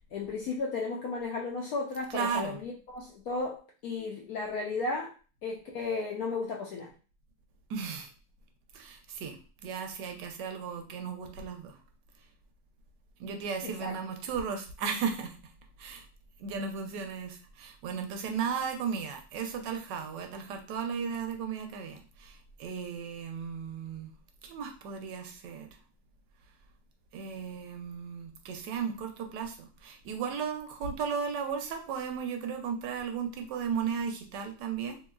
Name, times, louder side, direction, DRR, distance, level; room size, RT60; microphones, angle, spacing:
voice 1, 0.1-5.1 5.4-6.9 13.6-14.0, left 3 dB, 75° left, -1 dB, 0.8 m, -34 dB
voice 2, 2.1-2.6 7.7-8.1 8.7-11.8 13.2-15.4 15.8-16.1 16.4-24.1 24.4-25.7 27.1-35.0, right 6 dB, 75° right, 4 dB, 1.1 m, -35 dB
3.2 x 3.0 x 2.3 m, 0.36 s
omnidirectional pair, 2.0 m